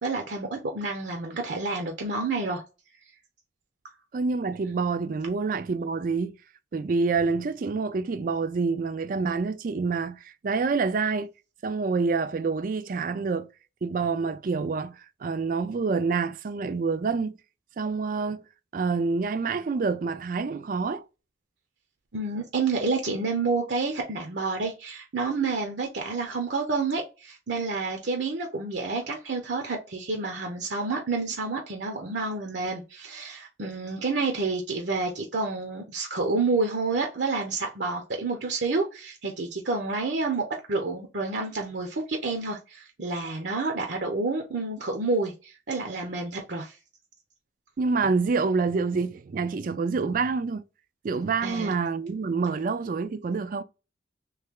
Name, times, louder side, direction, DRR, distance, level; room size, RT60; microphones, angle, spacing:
voice 1, 0.0-2.6 22.1-46.7 51.4-51.7, right 3 dB, 75° right, 0.8 m, -29 dB
voice 2, 4.1-6.4 6.7-11.3 11.6-13.5 13.8-17.4 17.8-18.4 18.7-21.0 47.8-50.6 51.0-53.6, right 4 dB, 50° right, 0.4 m, -27 dB
3.2 x 3.2 x 3.6 m
head